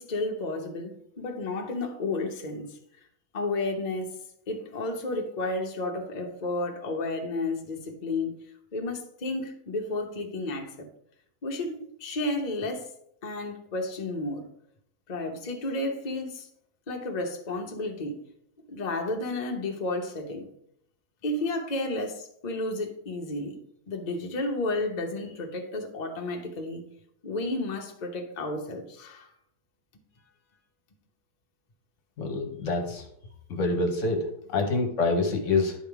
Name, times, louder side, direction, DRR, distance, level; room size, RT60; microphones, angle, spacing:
voice 1, 0.0-2.8 3.3-4.1 4.5-8.3 8.7-10.9 11.4-12.9 13.2-14.5 15.1-16.5 16.9-18.2 18.7-20.5 21.2-23.6 23.9-26.8 27.2-29.3, left 2 dB, 35° left, 0.8 m, -32 dB
voice 2, 32.2-33.0 33.5-35.8, left 3 dB, 60° left, 1.2 m, -26 dB
10.0 x 3.6 x 4.6 m
omnidirectional pair, 1.6 m